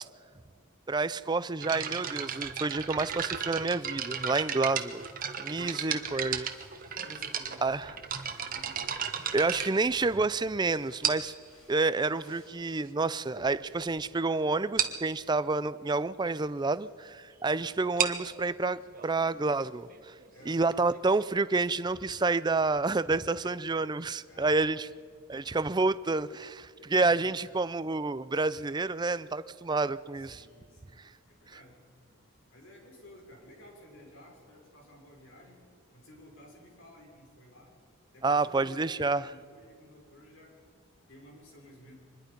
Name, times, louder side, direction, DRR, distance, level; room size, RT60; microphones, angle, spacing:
voice 1, 0.9-5.0 5.4-6.5 7.6-7.9 9.3-11.3 11.7-20.1 20.5-24.9 25.3-30.4 38.2-39.2, right 3 dB, 20° right, 15 dB, 0.4 m, -29 dB
sound 1, 1.6-10.4 11.0-11.5 12.3-12.4 13.0-13.1 13.4-13.6 13.9-14.0 14.3-14.4 14.8-15.1 17.8-21.2, right 8 dB, 40° right, 1.2 m, -35 dB
sound 2, 4.5-12.5, left 2 dB, 75° left, 7.9 m, -64 dB
voice 2, 4.5-5.1 5.4-6.4 7.0-8.1 20.3-20.7 23.4-23.6 24.3-24.9 26.7-27.6 30.1-31.8 32.5-35.6 35.9-37.7 38.1-40.6 41.1-42.0, left 1 dB, 60° left, 0 dB, 6.1 m, -54 dB
24.5 x 21.0 x 5.3 m, 2.1 s
head